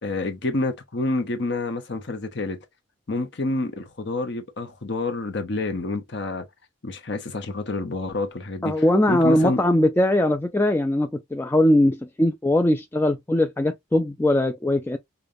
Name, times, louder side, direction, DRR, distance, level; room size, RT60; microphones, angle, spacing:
voice 1, 0.0-2.6 3.1-6.4 6.8-9.6, left 2 dB, 55° left, 0.8 m, -28 dB
voice 2, 8.6-15.0, left 1 dB, 10° left, 0.3 m, -20 dB
5.0 x 2.2 x 2.6 m
head